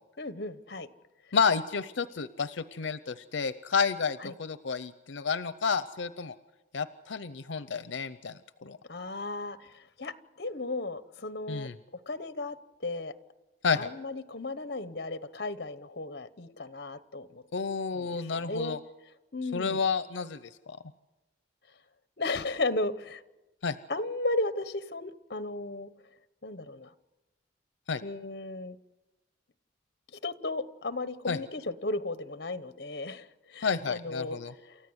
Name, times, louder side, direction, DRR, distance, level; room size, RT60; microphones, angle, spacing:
voice 1, 0.2-0.9 4.2-4.3 8.9-11.7 12.1-12.6 12.8-13.1 13.8-17.4 17.9-18.8 19.3-19.8 22.2-23.2 23.9-25.9 26.4-26.9 28.0-28.8 30.1-34.4 34.7-34.8, left 2 dB, 55° left, 13 dB, 1.0 m, -35 dB
voice 2, 1.3-6.4 6.7-8.3 8.6-8.8 11.5-11.7 13.6-13.9 17.5-18.8 19.5-20.8 23.6-23.8 27.9-28.0 31.3-31.4 33.6-34.5, left 5 dB, 85° left, 14 dB, 0.6 m, -30 dB
29.0 x 14.0 x 8.0 m, 1.1 s
head